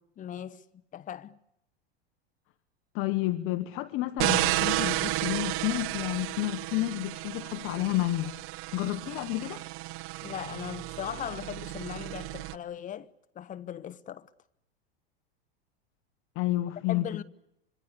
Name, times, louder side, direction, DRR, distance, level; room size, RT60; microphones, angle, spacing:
voice 1, 0.2-0.6 0.9-1.4 10.2-13.1 13.3-14.3 16.9-17.2, left 10 dB, 25° left, 1.1 m, -38 dB
voice 2, 2.9-8.3 8.7-9.6 16.3-17.0, left 17 dB, 45° left, 1.3 m, -30 dB
sound 1, 4.2-12.6, right 19 dB, 45° right, 0.9 m, -32 dB
26.0 x 23.0 x 8.4 m
supercardioid pair, 125°, 30 cm